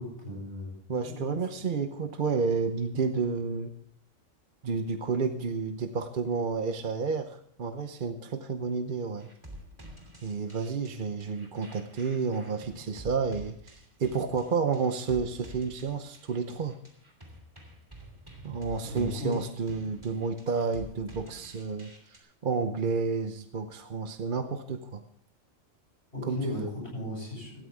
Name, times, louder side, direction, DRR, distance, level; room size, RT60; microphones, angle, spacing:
voice 1, 0.0-1.6 18.8-19.3 26.1-27.6, left 1 dB, 45° left, -3 dB, 8.1 m, -37 dB
voice 2, 0.9-3.7 4.6-9.3 10.2-16.8 18.4-25.0 26.3-26.7, right 5 dB, 45° right, 8 dB, 0.9 m, -31 dB
sound 1, 9.2-22.2, right 1 dB, 20° right, 2.9 m, -49 dB
17.5 x 13.5 x 3.5 m, 0.72 s
omnidirectional pair, 1.3 m